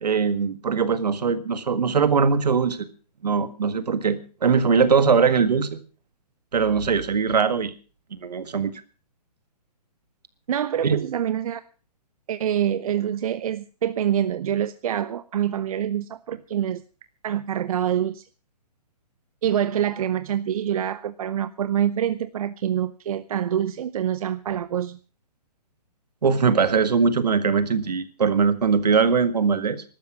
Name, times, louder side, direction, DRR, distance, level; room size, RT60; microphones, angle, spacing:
voice 1, 0.0-2.9 3.2-5.8 6.5-7.7 8.1-8.7 10.8-11.0 26.2-29.8, right 5 dB, 80° right, 13 dB, 1.8 m, -21 dB
voice 2, 10.5-11.6 12.3-16.8 17.2-18.2 19.4-25.0, right 10 dB, 60° right, 14 dB, 0.7 m, -26 dB
14.5 x 12.5 x 6.0 m, 0.36 s
hypercardioid pair, 140°, 20 cm